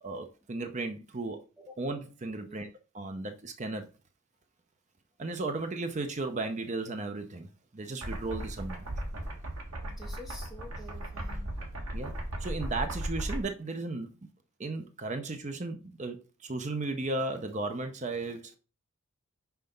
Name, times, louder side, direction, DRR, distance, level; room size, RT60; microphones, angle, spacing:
voice 1, 0.0-1.4 1.8-2.7 2.9-3.9 5.2-8.8 11.9-12.1 12.4-14.1 14.6-18.5, right 2 dB, 30° right, 0.6 m, -35 dB
sound 1, 8.0-13.4, right 1 dB, 80° right, 1.7 m, -36 dB
voice 2, 9.8-11.6, left 1 dB, ahead, 1.6 m, -48 dB
5.7 x 4.1 x 5.3 m
head